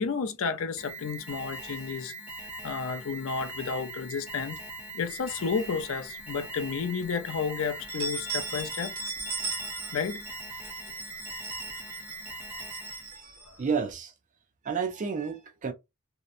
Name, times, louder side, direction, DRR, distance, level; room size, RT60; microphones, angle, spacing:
voice 1, 0.0-2.1 2.6-4.6 4.9-8.9 9.9-10.2, left 5 dB, 60° left, 0.4 m, -31 dB
Alarm, 0.8-13.2, right 1 dB, 5° right, 0.7 m, -41 dB
sound 1, 5.2-6.1 6.6-6.7 7.0-7.1 7.7-13.9, right 4 dB, 70° right, 0.8 m, -38 dB
voice 2, 13.6-14.1 14.6-15.7, right 5 dB, 35° right, 0.4 m, -31 dB
2.7 x 2.1 x 2.4 m
head